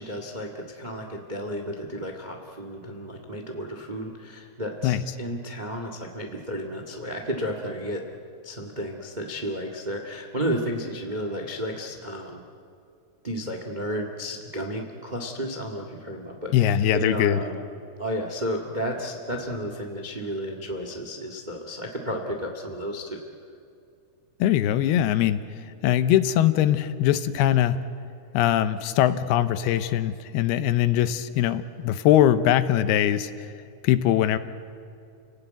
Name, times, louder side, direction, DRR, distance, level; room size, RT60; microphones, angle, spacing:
voice 1, 0.0-8.0 8.4-12.4 13.2-17.6 18.0-23.2, equal, 80° right, 4 dB, 0.4 m, -32 dB
voice 2, 16.5-17.4 24.4-25.4 25.8-27.8 28.3-33.5 33.8-34.4, left 11 dB, 85° left, 12 dB, 2.8 m, -21 dB
29.5 x 17.5 x 9.3 m, 2.4 s
omnidirectional pair, 4.5 m